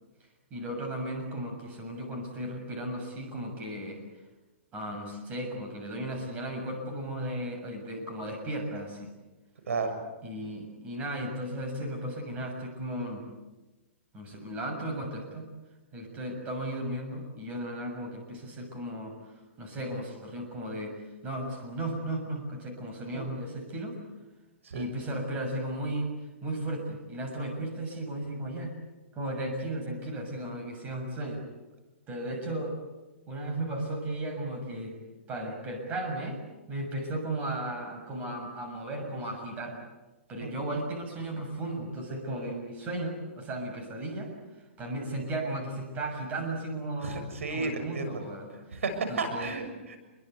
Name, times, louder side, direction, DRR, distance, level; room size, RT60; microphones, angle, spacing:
voice 1, 0.5-4.0 4.7-9.1 10.2-13.3 14.1-15.5 15.9-19.2 19.6-24.0 24.7-26.1 26.4-28.7 29.1-31.4 32.1-32.8 33.3-35.0 35.3-36.4 36.7-39.8 40.3-44.3 44.8-48.8 49.1-49.5, right 1 dB, 20° right, 2 dB, 6.9 m, -35 dB
voice 2, 9.7-10.0 23.1-23.2 24.6-24.8 40.4-40.5 47.0-48.2 48.7-50.0, right 4 dB, 90° right, 8 dB, 6.8 m, -33 dB
29.0 x 23.0 x 8.3 m, 1.1 s
hypercardioid pair, 160°, 7 cm